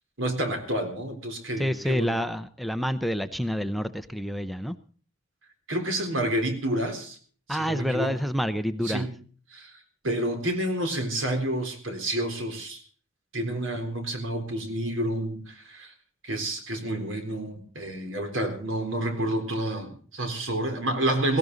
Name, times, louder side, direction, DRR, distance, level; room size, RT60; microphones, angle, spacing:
voice 1, 0.2-2.2 5.7-7.2 7.5-8.2 8.8-9.1 9.5-12.8 13.3-15.9 16.2-21.4, right 1 dB, 90° right, 6 dB, 3.8 m, -29 dB
voice 2, 1.6-4.8 7.5-9.1, equal, ahead, 9 dB, 0.7 m, -28 dB
17.5 x 17.0 x 4.0 m, 0.43 s
head